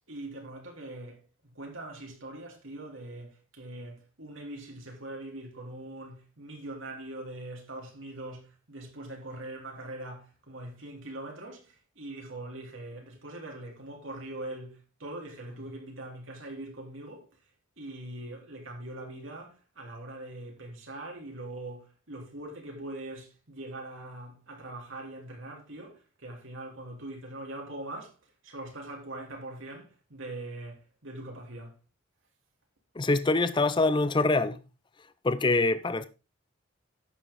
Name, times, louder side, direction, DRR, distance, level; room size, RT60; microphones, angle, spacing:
voice 1, 0.1-17.3 17.8-28.2 28.4-31.8, right 1 dB, 70° right, 3.6 m, -42 dB
voice 2, 33.0-34.6 35.2-36.1, left 3 dB, 25° left, 0.5 m, -24 dB
11.0 x 8.4 x 3.7 m
head